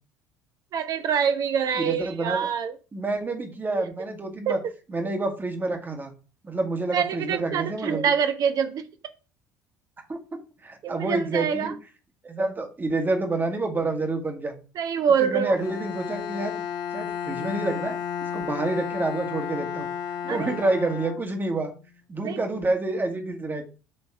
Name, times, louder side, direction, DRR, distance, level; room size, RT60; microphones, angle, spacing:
voice 1, 0.7-2.7 4.5-4.6 6.9-8.8 10.8-11.7 14.8-15.6 20.3-20.6 22.2-22.4, right 7 dB, 45° right, 0.9 m, -25 dB
voice 2, 1.8-2.4 2.9-4.6 4.9-6.1 6.4-8.0 10.1-10.2 10.6-11.7 12.2-14.5 15.2-16.5 16.9-19.9 20.2-21.7 22.1-23.6, right 2 dB, 20° right, 1.5 m, -28 dB
Bowed string instrument, 15.5-21.7, left 8 dB, 50° left, 0.7 m, -33 dB
7.7 x 3.4 x 4.5 m
figure-of-eight pair, 60°, 9 cm